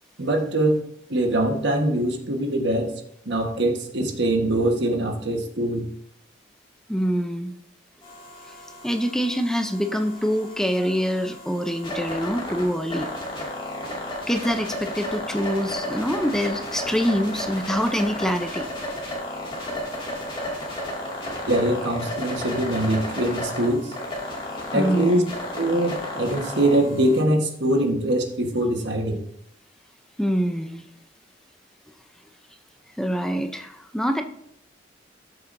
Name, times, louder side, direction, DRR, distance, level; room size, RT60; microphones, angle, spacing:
voice 1, 0.2-0.8 1.1-2.9 3.2-5.9 21.5-24.0 24.7-25.2 25.6-29.2, right 1 dB, 60° right, 3 dB, 1.3 m, -23 dB
voice 2, 6.9-7.5 8.8-13.1 14.3-18.7 24.7-25.3 30.2-30.8 33.0-34.2, equal, 5° left, 5 dB, 0.5 m, -25 dB
sound 1, 8.0-27.2, left 1 dB, 25° left, 2.2 m, -33 dB
13.0 x 6.7 x 2.6 m, 0.70 s
head